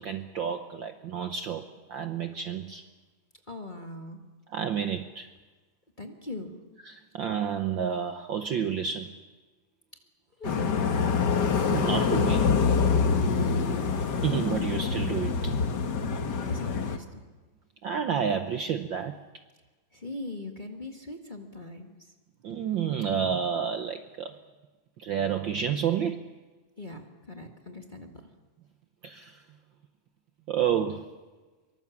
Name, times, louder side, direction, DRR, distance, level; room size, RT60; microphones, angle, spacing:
voice 1, 0.0-2.8 4.5-5.3 6.9-9.2 11.7-12.5 14.2-15.5 17.8-19.2 22.4-24.4 25.0-26.3 29.0-29.4 30.5-31.1, right 8 dB, 85° right, 8 dB, 1.0 m, -30 dB
voice 2, 3.5-4.2 6.0-6.6 10.4-11.2 13.3-13.9 16.4-17.2 19.9-22.1 26.8-28.3, left 2 dB, 20° left, 3 dB, 1.3 m, -41 dB
sound 1, 10.4-17.0, left 5 dB, 45° left, 1.6 m, -25 dB
24.5 x 23.5 x 7.2 m, 1.3 s
omnidirectional pair, 3.4 m